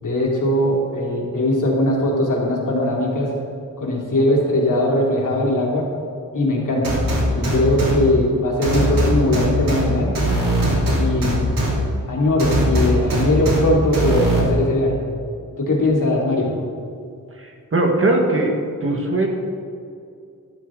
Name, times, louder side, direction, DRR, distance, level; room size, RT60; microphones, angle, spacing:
voice 1, 0.0-3.3 3.8-5.9 6.3-7.0 7.3-10.1 10.9-11.5 12.1-15.0 15.6-16.5, left 1 dB, 65° left, -3 dB, 2.8 m, -20 dB
sound 1, 6.8-7.9 8.6-9.8 10.2-11.7 12.4-13.6 13.9-14.4, right 1 dB, 85° right, 3.2 m, -20 dB
voice 2, 17.4-19.3, right 2 dB, 40° right, 1 dB, 1.5 m, -20 dB
12.5 x 12.5 x 3.8 m, 2.4 s
wide cardioid pair, 170°, 33 cm